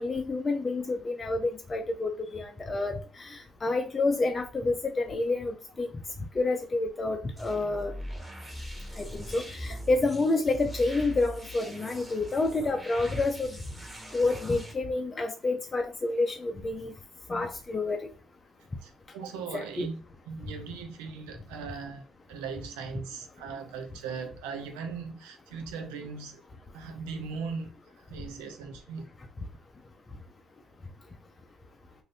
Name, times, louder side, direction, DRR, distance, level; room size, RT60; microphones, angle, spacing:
voice 1, 0.0-5.9 6.3-7.9 9.0-13.6 14.1-16.9 17.3-18.1 19.5-19.9, left 3 dB, 35° left, 0.5 m, -29 dB
sound 1, 7.4-14.7, right 1 dB, 10° right, 1.2 m, -42 dB
voice 2, 18.8-26.4 26.7-27.7 28.0-29.1, right 5 dB, 90° right, 0.5 m, -39 dB
2.6 x 2.5 x 3.3 m
supercardioid pair, 60°, 0 cm